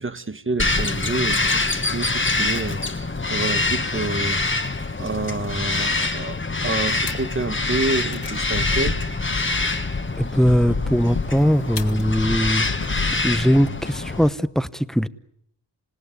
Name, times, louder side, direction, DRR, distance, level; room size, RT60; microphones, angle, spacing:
voice 1, 0.0-4.4 5.0-9.8, right 3 dB, 30° right, 1.1 m, -29 dB
Bird vocalization bird call bird song, 0.6-14.3, left 3 dB, 30° left, 1.5 m, -25 dB
sound 1, 5.4-13.3, left 4 dB, 70° left, 2.4 m, -32 dB
voice 2, 10.2-12.9 13.2-15.1, equal, ahead, 0.9 m, -20 dB
27.5 x 17.5 x 9.7 m
wide cardioid pair, 70°, 42 cm